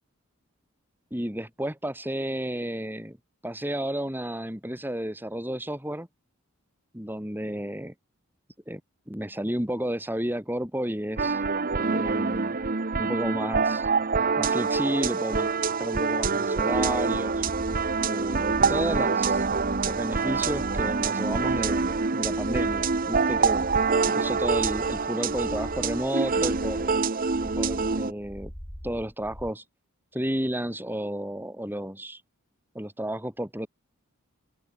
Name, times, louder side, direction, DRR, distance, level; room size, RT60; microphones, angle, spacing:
voice 1, 1.1-3.2 3.4-6.1 6.9-7.9 8.7-8.8 9.1-11.4 11.8-12.6 13.0-13.9 14.4-17.4 18.0-19.4 19.9-23.7 24.1-27.0 27.4-28.5 28.8-29.6 30.1-32.2 32.7-33.7, right 1 dB, 10° right, 5.7 m, -32 dB
sound 1, 11.2-28.1, right 4 dB, 40° right, 0.9 m, -26 dB
sound 2, 16.7-29.5, equal, 10° left, 2.6 m, -41 dB
head